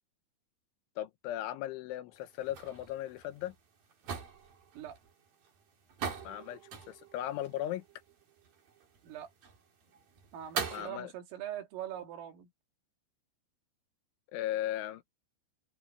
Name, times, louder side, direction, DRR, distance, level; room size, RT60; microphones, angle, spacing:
voice 1, 1.0-3.5 6.2-6.6 6.9-7.8 10.7-11.1 14.3-15.2, left 13 dB, 80° left, 3.3 m, -37 dB
sound 1, 2.2-10.9, right 6 dB, 50° right, 5.2 m, -43 dB
voice 2, 10.3-12.5, right 11 dB, 90° right, 5.3 m, -42 dB
omnidirectional pair, 5.7 m